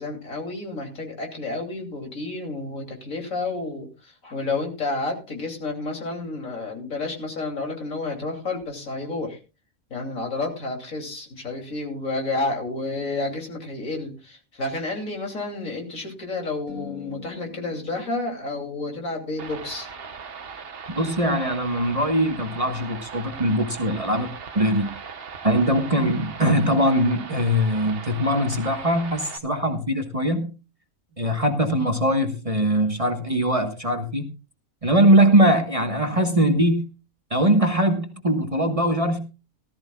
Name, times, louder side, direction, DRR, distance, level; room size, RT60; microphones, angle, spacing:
voice 1, 0.0-9.4 9.9-19.9, left 3 dB, 75° left, 2 dB, 3.3 m, -30 dB
sound 1, 16.7-21.0, left 5 dB, 40° left, 3.3 m, -46 dB
sound 2, 19.4-29.4, right 5 dB, 45° right, 1.2 m, -39 dB
voice 2, 20.9-24.9 25.4-30.5 31.2-34.3 34.8-36.8 37.3-39.2, right 1 dB, 25° right, 5 dB, 1.3 m, -21 dB
18.0 x 13.5 x 2.3 m, 0.30 s
omnidirectional pair, 1.4 m